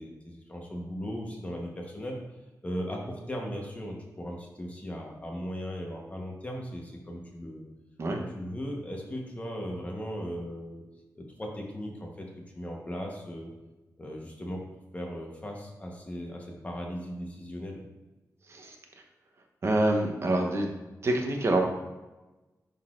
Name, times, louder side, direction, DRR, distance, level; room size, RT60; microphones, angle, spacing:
voice 1, 0.0-2.2 2.6-7.6 8.1-10.8 11.2-12.3 12.5-13.5 14.0-17.8, equal, 20° left, -1 dB, 1.1 m, -37 dB
voice 2, 19.6-20.7 21.0-21.6, right 1 dB, 45° right, 2 dB, 0.9 m, -26 dB
10.5 x 3.9 x 2.5 m, 1.1 s
wide cardioid pair, 160°, 6 cm